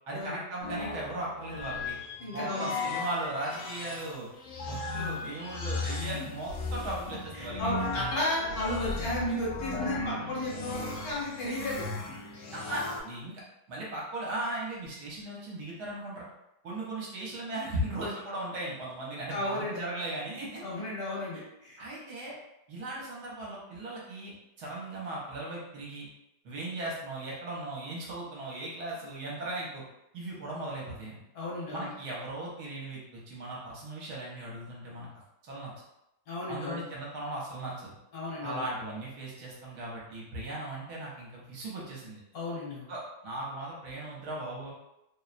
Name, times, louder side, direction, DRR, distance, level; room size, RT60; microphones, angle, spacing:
voice 1, 0.1-2.0 2.3-4.3 4.6-7.6 12.5-13.4 13.7-16.3 16.6-20.6 21.8-22.4 22.7-24.3 24.6-26.1 26.4-29.8 30.1-31.2 31.7-35.1 35.4-35.7 36.5-38.0 38.4-42.2 42.9-44.7, right 1 dB, 70° right, -4 dB, 1.2 m, -37 dB
sound 1, 0.6-13.0, left 3 dB, 80° left, 1.2 m, -36 dB
voice 2, 2.2-2.7 7.3-11.9 19.3-19.8 20.6-21.8 31.3-31.9 36.3-36.8 38.1-38.6 42.3-42.9, left 1 dB, 65° left, -6 dB, 1.3 m, -33 dB
2.9 x 2.0 x 2.4 m, 0.88 s
omnidirectional pair, 1.8 m